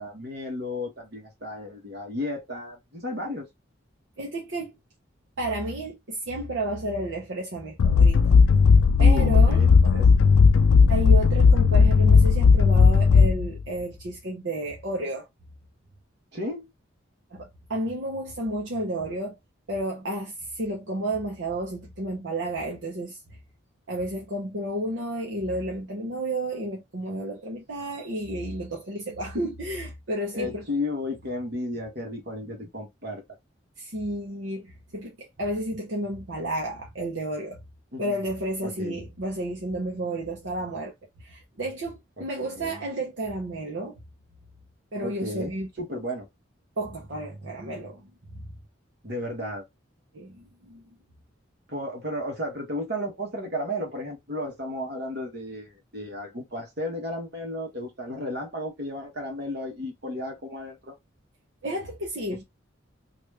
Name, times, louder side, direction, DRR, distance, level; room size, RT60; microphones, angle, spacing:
voice 1, 0.0-3.5 9.0-10.1 16.3-16.7 30.3-33.2 37.9-38.2 38.6-39.0 42.2-42.8 45.0-45.5 45.8-46.3 49.0-49.6 51.7-61.0, left 1 dB, 55° right, 1.3 m, -33 dB
voice 2, 4.2-4.7 5.4-8.3 9.0-9.6 10.9-15.3 17.3-19.4 19.7-23.2 23.9-30.7 33.8-37.6 38.0-40.9 41.2-44.0 44.9-45.7 46.8-48.1 50.1-50.8 61.6-62.4, right 1 dB, 70° right, 0.9 m, -31 dB
sound 1, 7.8-13.6, left 5 dB, 80° left, 0.4 m, -16 dB
3.1 x 2.5 x 3.3 m
head